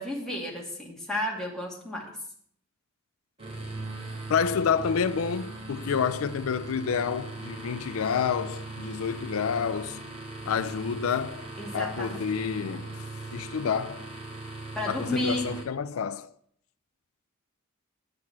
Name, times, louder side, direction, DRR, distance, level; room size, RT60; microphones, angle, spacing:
voice 1, 0.0-2.1 11.6-12.2 14.8-15.5, left 1 dB, 5° left, 2.4 m, -32 dB
sound 1, 3.4-15.6, right 2 dB, 30° right, 3.1 m, -39 dB
voice 2, 4.3-10.0 10.5-14.1 14.9-16.3, left 6 dB, 80° left, 0.4 m, -29 dB
9.7 x 6.7 x 7.2 m
head